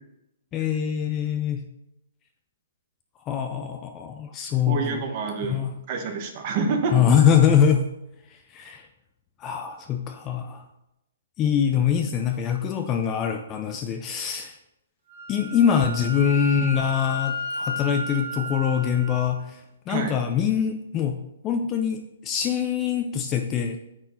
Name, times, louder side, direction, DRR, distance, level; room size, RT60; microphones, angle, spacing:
voice 1, 0.5-1.6 3.3-5.0 5.4-5.7 6.9-7.8 8.5-8.8 9.4-10.6 11.4-14.6 15.3-19.6 19.9-21.2 21.4-23.8, left 8 dB, 15° left, 5 dB, 0.3 m, -23 dB
voice 2, 4.7-7.0 19.9-20.2, right 4 dB, 25° right, 4 dB, 0.9 m, -28 dB
Wind instrument woodwind instrument, 15.1-19.3, left 1 dB, 50° right, 2.5 m, -33 dB
9.0 x 4.4 x 4.2 m, 0.87 s
hypercardioid pair, 175°, 0 cm